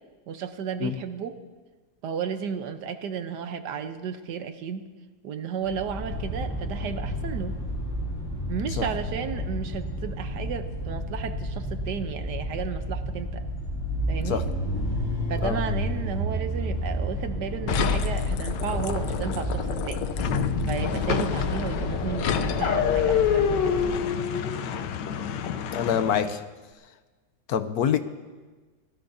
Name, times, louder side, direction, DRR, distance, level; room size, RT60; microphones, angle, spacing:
voice 1, 0.3-1.4 2.0-4.8 5.2-7.6 8.5-13.5 14.1-14.4 15.3-20.1 20.7-23.6, right 7 dB, 75° right, 9 dB, 1.4 m, -33 dB
sound 1, 5.7-24.0, equal, 15° left, 3.6 m, -31 dB
sound 2, 17.7-26.4, left 7 dB, 90° left, 1.4 m, -27 dB
voice 2, 25.7-26.4 27.5-28.0, left 8 dB, 70° left, 10 dB, 1.1 m, -25 dB
25.0 x 17.0 x 2.7 m, 1.3 s
omnidirectional pair, 1.8 m